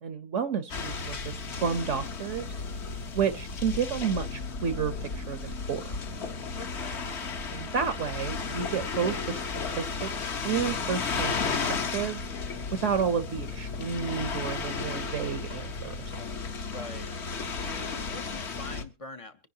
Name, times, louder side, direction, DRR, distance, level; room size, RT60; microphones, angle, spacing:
voice 1, 0.0-2.5 3.1-6.1 7.5-9.4 9.7-10.1 10.4-12.3 12.7-16.1, right 7 dB, 60° right, 1.0 m, -31 dB
sound 1, 0.7-18.8, left 4 dB, 50° left, 1.3 m, -34 dB
voice 2, 6.5-7.1 16.7-17.1 17.6-19.5, left 2 dB, 30° left, 0.7 m, -43 dB
23.5 x 10.5 x 2.8 m
omnidirectional pair, 1.6 m